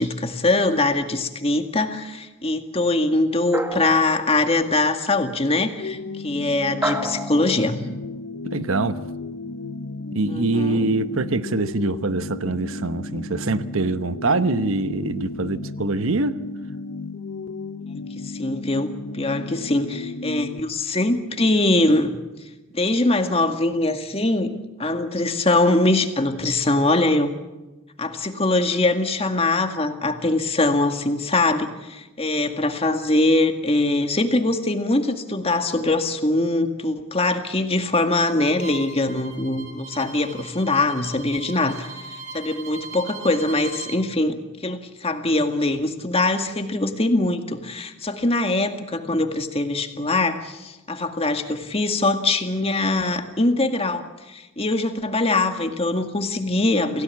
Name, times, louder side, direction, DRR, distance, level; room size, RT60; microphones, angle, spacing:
voice 1, 0.0-7.8 10.3-10.9 18.2-22.1 22.7-27.3 28.0-57.0, left 2 dB, 30° left, 6 dB, 2.0 m, -22 dB
sound 1, 3.5-4.5 6.8-7.7, right 1 dB, 10° right, 1.3 m, -28 dB
sound 2, 5.8-20.6, left 3 dB, 65° left, 0.8 m, -34 dB
voice 2, 8.5-9.0 10.1-16.4, right 3 dB, 75° right, 12 dB, 1.0 m, -24 dB
Bowed string instrument, 38.6-44.0, right 3 dB, 35° right, 3.9 m, -39 dB
28.0 x 17.0 x 8.5 m, 1.1 s
head